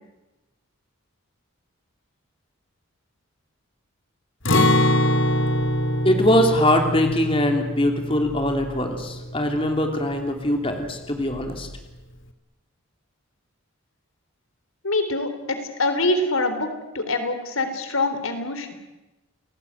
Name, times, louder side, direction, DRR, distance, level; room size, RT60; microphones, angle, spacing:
Acoustic guitar, 4.4-10.3 10.7-10.8 11.3-11.8, left 1 dB, 60° left, 2.5 m, -24 dB
voice 1, 6.0-11.7, left 1 dB, 25° left, 4 dB, 3.0 m, -22 dB
voice 2, 14.8-16.7 16.9-18.7, left 2 dB, 75° left, 9 dB, 3.7 m, -24 dB
29.5 x 19.0 x 9.5 m, 1.1 s
head